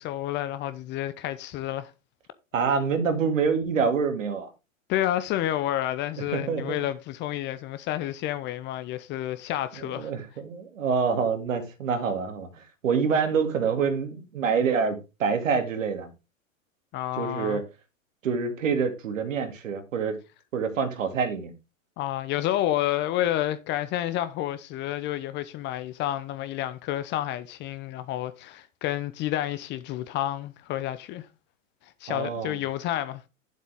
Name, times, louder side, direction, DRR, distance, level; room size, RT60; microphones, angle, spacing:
voice 1, 0.0-1.9 4.9-10.1 16.9-17.6 22.0-31.3 32.0-33.2, left 13 dB, 25° left, 0.7 m, -30 dB
voice 2, 2.5-4.5 6.3-6.8 9.8-16.1 17.2-17.6 18.2-20.2 20.5-21.5 32.1-32.6, right 5 dB, 70° right, 2.4 m, -26 dB
9.4 x 7.4 x 3.6 m
hypercardioid pair, 110°, 40 cm